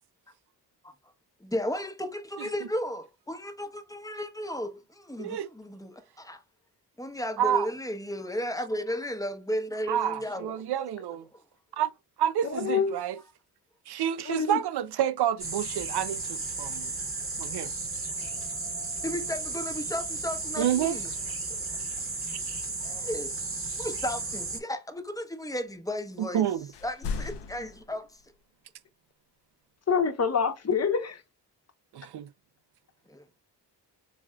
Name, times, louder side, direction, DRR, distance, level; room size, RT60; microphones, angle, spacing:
voice 1, 1.4-6.4 7.0-10.6 11.3-11.4 19.0-21.1 21.5-21.6 22.8-23.3 23.8-26.5 26.8-28.2 33.1-33.2, equal, 10° left, 0.8 m, -34 dB
voice 2, 9.9-11.3 11.7-11.9 12.2-13.2 13.9-16.9 17.4-17.7 18.2-18.3 20.6-21.0 22.3-22.6 26.2-26.7 31.9-32.3, right 10 dB, 70° right, 0.5 m, -29 dB
voice 3, 12.5-13.0 14.3-14.6 29.9-31.2, left 6 dB, 35° left, 0.9 m, -26 dB
sound 1, 15.4-24.6, right 3 dB, 30° right, 0.9 m, -34 dB
sound 2, 26.7-28.4 30.9-31.0, left 5 dB, 75° left, 0.6 m, -36 dB
3.5 x 3.4 x 2.2 m
cardioid pair, 50°, 42 cm